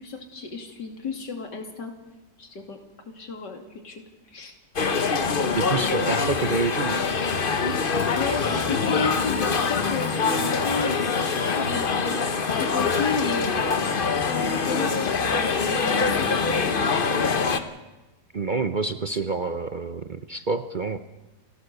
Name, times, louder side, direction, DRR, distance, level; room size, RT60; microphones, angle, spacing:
voice 1, 0.0-1.9 2.4-2.8 3.1-4.5 8.1-11.0 11.4-13.8 14.1-17.3, left 5 dB, 80° left, 4 dB, 3.3 m, -33 dB
sound 1, 4.8-17.6, left 5 dB, 35° left, 1.1 m, -24 dB
voice 2, 5.6-7.0 18.3-21.0, right 4 dB, 45° right, 10 dB, 0.6 m, -27 dB
29.5 x 13.0 x 6.8 m, 1.1 s
omnidirectional pair, 1.8 m